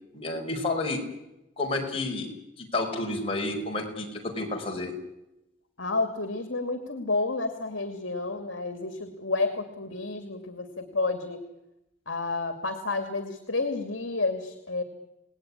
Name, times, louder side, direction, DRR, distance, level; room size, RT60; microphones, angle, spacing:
voice 1, 0.1-1.0 1.6-2.3 2.6-5.0, left 2 dB, 30° left, 0 dB, 5.4 m, -30 dB
voice 2, 5.8-11.4 12.1-14.8, left 3 dB, 75° left, 7 dB, 2.6 m, -30 dB
28.5 x 19.0 x 10.0 m, 0.94 s
head